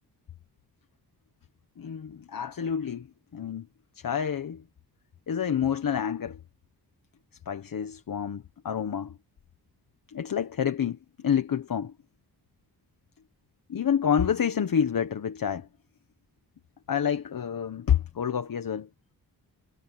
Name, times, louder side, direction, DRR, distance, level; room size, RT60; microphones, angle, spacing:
voice 1, 1.8-3.1 3.3-3.7 3.9-4.6 5.3-6.4 7.5-9.2 10.1-11.9 13.7-15.7 16.9-18.9, left 8 dB, 55° left, 1.2 m, -28 dB
wide cardioid pair, 150°, 39 cm